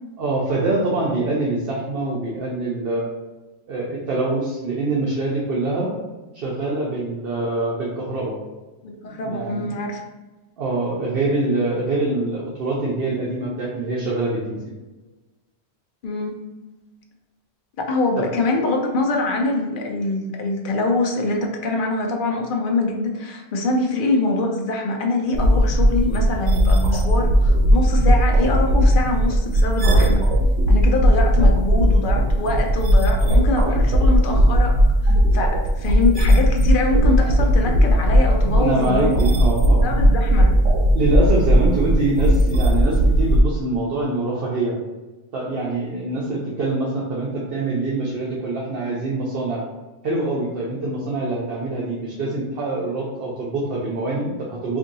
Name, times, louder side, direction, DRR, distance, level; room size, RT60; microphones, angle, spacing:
voice 1, 0.2-3.0 3.7-5.9 6.3-8.4 9.1-9.7 10.6-14.6 18.2-18.3 31.4-31.5 38.6-40.0 40.9-44.8 45.3-49.6 50.0-54.8, right 2 dB, 65° right, -5 dB, 0.8 m, -24 dB
voice 2, 8.8-10.0 16.0-16.4 17.8-30.2 30.7-34.7 35.0-39.1 39.7-40.5, left 2 dB, 60° left, 1 dB, 0.7 m, -24 dB
sound 1, 25.3-43.4, equal, 85° right, 0.9 m, -17 dB
2.7 x 2.6 x 3.9 m, 1.1 s
omnidirectional pair, 1.1 m